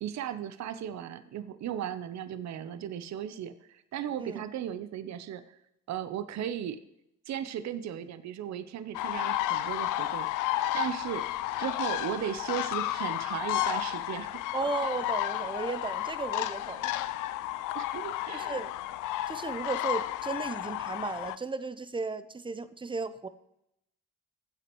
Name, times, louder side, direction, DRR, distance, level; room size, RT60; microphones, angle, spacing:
voice 1, 0.0-5.4 5.9-6.8 7.3-10.3 10.7-11.3 11.6-14.4 17.7-18.6, right 10 dB, 65° right, 12 dB, 0.7 m, -36 dB
sound 1, 8.9-21.4, left 14 dB, 90° left, 0.5 m, -32 dB
voice 2, 14.5-16.9 18.3-18.7 19.3-23.3, right 3 dB, 15° right, 13 dB, 0.6 m, -35 dB
14.5 x 7.8 x 3.0 m, 0.82 s
cardioid pair, 90°, 30 cm